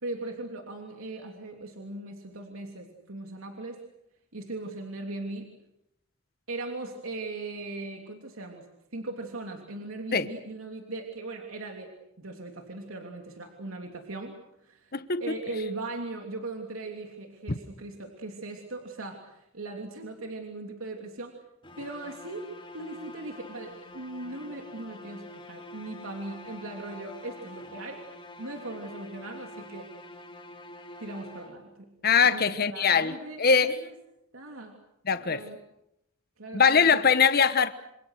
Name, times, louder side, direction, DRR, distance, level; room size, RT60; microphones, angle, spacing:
voice 1, 0.0-3.8 4.3-5.6 6.5-8.6 8.9-14.3 14.6-21.4 21.8-22.5 22.7-28.1 28.4-29.9 31.0-31.9 32.2-33.9 34.3-34.7 35.1-35.6 36.4-37.1, right 2 dB, 85° right, 2 dB, 3.2 m, -39 dB
voice 2, 14.9-15.2 32.0-33.1 33.4-33.8 35.1-35.4 36.5-37.7, left 6 dB, 45° left, 11 dB, 1.2 m, -22 dB
sound 1, 21.6-31.9, left 1 dB, 25° left, 2.9 m, -46 dB
27.0 x 27.0 x 6.5 m, 0.82 s
head